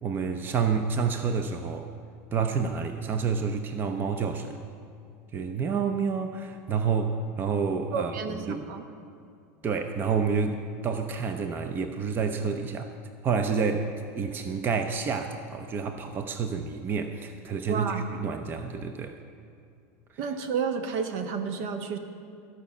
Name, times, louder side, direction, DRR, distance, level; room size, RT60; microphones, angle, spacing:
voice 1, 0.0-1.9 2.3-4.6 5.3-8.7 9.6-12.9 13.2-13.9 14.1-19.2, right 5 dB, 25° right, 7 dB, 0.6 m, -29 dB
voice 2, 7.9-8.8 17.7-18.1 20.2-22.0, right 5 dB, 65° right, 7 dB, 1.1 m, -31 dB
14.5 x 5.6 x 7.1 m, 2.4 s
supercardioid pair, 125°, 8 cm